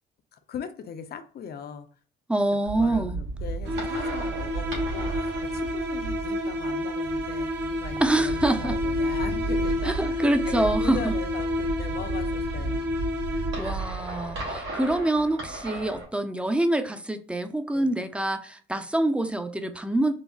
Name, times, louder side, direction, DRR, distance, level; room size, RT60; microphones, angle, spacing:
voice 1, 0.3-1.9 2.8-12.9 17.7-17.9, left 7 dB, 55° left, 0.5 m, -39 dB
voice 2, 2.3-3.2 8.0-8.8 9.8-11.1 13.6-20.1, right 1 dB, 5° right, 0.4 m, -26 dB
sound 1, 2.7-16.1, right 3 dB, 85° right, 1.3 m, -34 dB
sound 2, 3.6-13.9, left 1 dB, 60° right, 0.8 m, -30 dB
3.8 x 2.0 x 2.3 m
cardioid pair, 90°, 20 cm